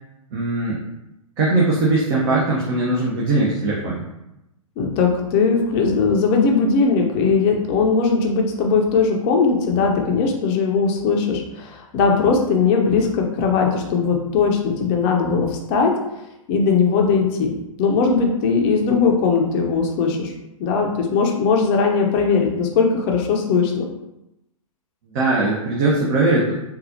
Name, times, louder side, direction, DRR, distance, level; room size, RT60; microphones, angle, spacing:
voice 1, 0.3-0.8 1.4-4.0 25.1-26.5, right 2 dB, 40° right, -5 dB, 0.7 m, -20 dB
voice 2, 4.8-16.0 16.5-17.5 17.8-20.3 20.6-23.8, left 5 dB, 30° left, 1 dB, 0.5 m, -19 dB
4.0 x 2.4 x 2.6 m, 0.90 s
figure-of-eight pair, 110°, 18 cm